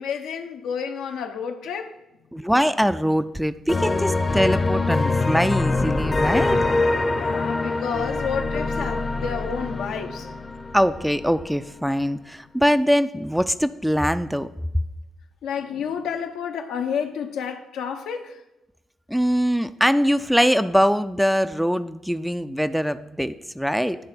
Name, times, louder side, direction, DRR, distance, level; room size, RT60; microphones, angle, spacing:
voice 1, 0.0-2.0 7.1-10.3 15.4-18.4, left 7 dB, 80° left, 0.7 m, -30 dB
voice 2, 2.3-6.7 10.7-14.5 19.1-24.0, equal, ahead, 0.4 m, -22 dB
sound 1, 3.7-11.3, left 3 dB, 30° left, 0.7 m, -24 dB
9.8 x 3.3 x 5.7 m
supercardioid pair, 55°, 0 cm